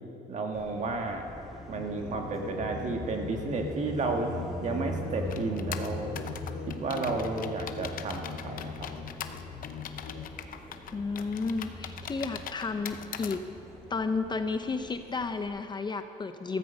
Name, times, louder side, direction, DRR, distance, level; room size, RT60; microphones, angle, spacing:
voice 1, 0.3-1.3 1.7-4.3 4.6-6.1 6.7-8.7, right 3 dB, 45° right, 2 dB, 2.0 m, -32 dB
Car passing by, 0.5-15.5, equal, ahead, 4.0 m, -43 dB
sound 1, 1.7-10.3, left 6 dB, 75° left, 1.5 m, -42 dB
sound 2, 5.3-13.4, left 9 dB, 55° left, 0.8 m, -41 dB
voice 2, 10.9-13.4 13.9-16.6, left 4 dB, 25° left, 8 dB, 0.7 m, -32 dB
14.5 x 14.0 x 5.4 m, 2.5 s
cardioid pair, 110°, 17 cm